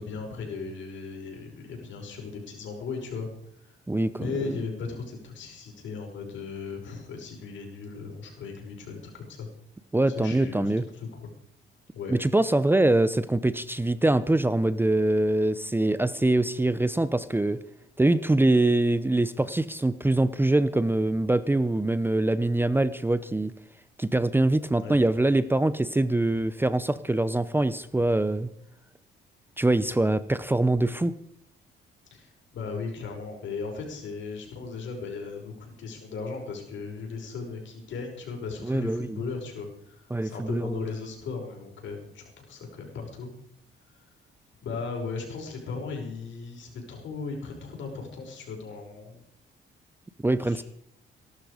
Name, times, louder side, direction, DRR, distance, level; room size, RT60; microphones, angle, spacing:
voice 1, 0.0-3.3 4.1-9.5 10.1-11.3 11.9-12.1 24.7-25.0 32.1-43.3 43.9-44.0 44.6-49.2 50.4-50.6, left 4 dB, 70° left, 1 dB, 5.8 m, -37 dB
voice 2, 3.9-4.3 9.9-10.9 12.1-17.6 18.0-23.5 24.0-28.5 29.6-31.1 38.6-39.2 40.1-40.8 50.2-50.6, right 2 dB, 10° right, 15 dB, 0.7 m, -24 dB
19.0 x 12.0 x 5.1 m, 0.73 s
cardioid pair, 90°, 20 cm